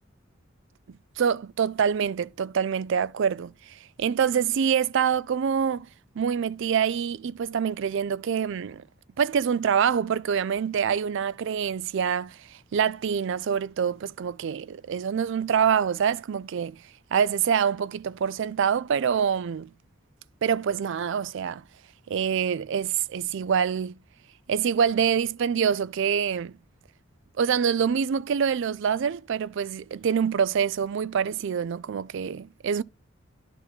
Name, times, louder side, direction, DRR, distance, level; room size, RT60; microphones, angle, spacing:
voice 1, 1.2-5.9 6.2-8.8 9.2-16.8 17.1-19.7 20.4-21.6 22.1-24.0 24.5-26.6 27.4-32.8, right 7 dB, 65° right, 0.4 m, -26 dB
10.5 x 4.0 x 4.4 m
head